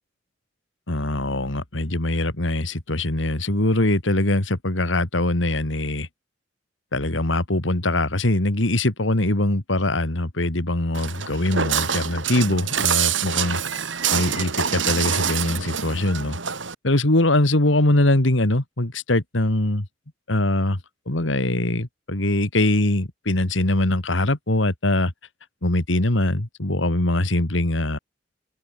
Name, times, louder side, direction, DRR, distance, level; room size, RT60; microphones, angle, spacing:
voice 1, 0.9-6.1 6.9-13.6 14.1-16.4 16.8-19.9 20.3-20.8 21.1-25.1 25.6-28.0, left 1 dB, 80° left, 2.5 m, -22 dB
Walk footsteps, 10.9-16.7, right 8 dB, 80° right, 4.0 m, -25 dB
head